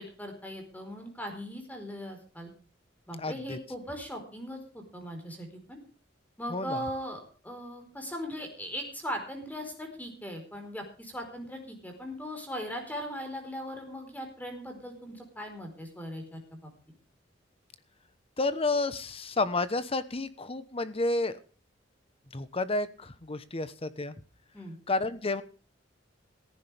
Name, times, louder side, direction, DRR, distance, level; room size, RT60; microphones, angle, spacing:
voice 1, 0.0-2.5 3.1-5.8 6.4-16.7 24.5-24.7, equal, 10° left, 4 dB, 4.5 m, -39 dB
voice 2, 3.2-3.6 6.5-6.8 18.4-21.4 22.3-24.1 24.9-25.4, left 2 dB, 30° left, 13 dB, 1.1 m, -30 dB
16.0 x 15.0 x 3.5 m, 0.40 s
head